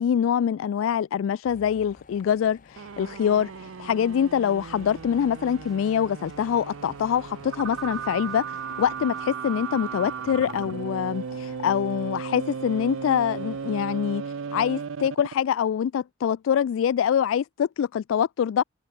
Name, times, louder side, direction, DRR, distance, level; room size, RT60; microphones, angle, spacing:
voice 1, 0.0-8.4 8.8-18.6, left 8 dB, 80° left, 0.3 m, -25 dB
sound 1, 1.4-14.0, left 3 dB, 40° left, 0.8 m, -53 dB
sound 2, 2.8-15.5, right 6 dB, 85° right, 0.5 m, -36 dB
sound 3, 4.1-9.2, equal, ahead, 1.8 m, -59 dB
open air
head